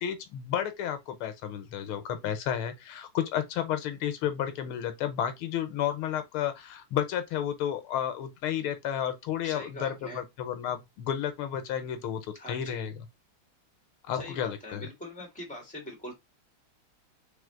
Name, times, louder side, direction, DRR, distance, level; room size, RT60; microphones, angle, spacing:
voice 1, 0.0-13.0 14.1-14.9, left 10 dB, 90° left, 1.7 m, -32 dB
voice 2, 9.4-10.2 12.3-12.9 14.2-16.1, left 1 dB, 5° left, 1.9 m, -42 dB
3.9 x 3.4 x 3.7 m
omnidirectional pair, 2.3 m